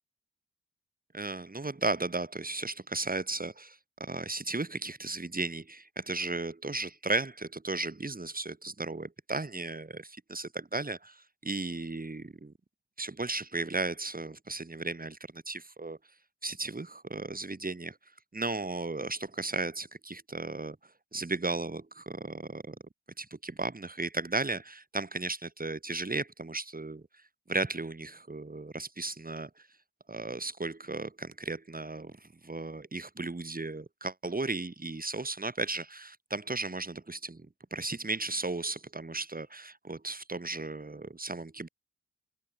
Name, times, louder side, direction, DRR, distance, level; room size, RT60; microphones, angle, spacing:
voice 1, 1.1-12.5 13.0-16.0 16.4-18.0 18.3-22.8 23.2-29.7 30.1-41.7, right 3 dB, 30° right, 7.0 m, -35 dB
cardioid pair, 60°, 29 cm